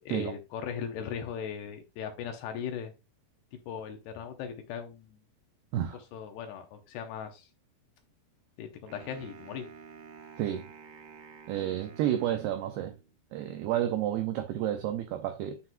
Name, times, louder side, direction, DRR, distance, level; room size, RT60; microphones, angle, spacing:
voice 1, 0.1-2.9 3.7-5.2 5.9-7.5 8.6-9.7, left 7 dB, 75° left, 2.6 m, -38 dB
Wind instrument woodwind instrument, 8.9-13.1, right 6 dB, 60° right, 2.6 m, -50 dB
voice 2, 11.5-13.0 13.3-15.6, right 11 dB, 90° right, 2.2 m, -30 dB
9.7 x 6.0 x 2.2 m
omnidirectional pair, 5.5 m